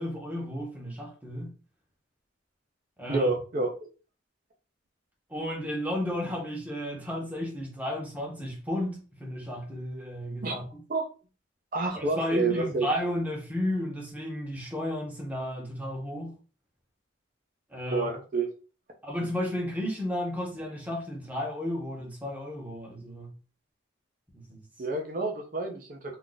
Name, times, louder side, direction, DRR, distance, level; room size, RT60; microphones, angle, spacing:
voice 1, 0.0-1.5 3.0-3.6 5.3-10.8 11.9-16.3 17.7-18.1 19.0-23.3 24.3-24.6, left 1 dB, 10° right, 0.8 m, -33 dB
voice 2, 3.1-3.9 10.4-10.6 10.9-11.1 11.7-12.9 17.9-18.5 24.8-26.2, right 3 dB, 45° right, 0.6 m, -29 dB
2.4 x 2.4 x 3.8 m
head